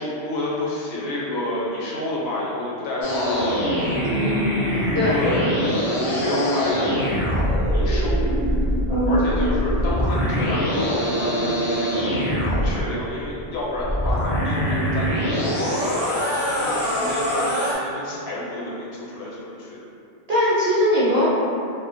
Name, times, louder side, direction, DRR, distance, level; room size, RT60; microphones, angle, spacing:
voice 1, 0.0-3.6 5.1-7.0 7.7-8.2 9.1-12.3 12.6-16.1 16.5-19.8, left 1 dB, 80° left, -6 dB, 0.8 m, -29 dB
sound 1, 3.0-12.8 13.7-17.7, equal, 50° left, 0.5 m, -23 dB
voice 2, 20.3-21.3, equal, 45° right, -10 dB, 0.6 m, -20 dB
2.4 x 2.1 x 2.5 m, 2.6 s
omnidirectional pair, 1.1 m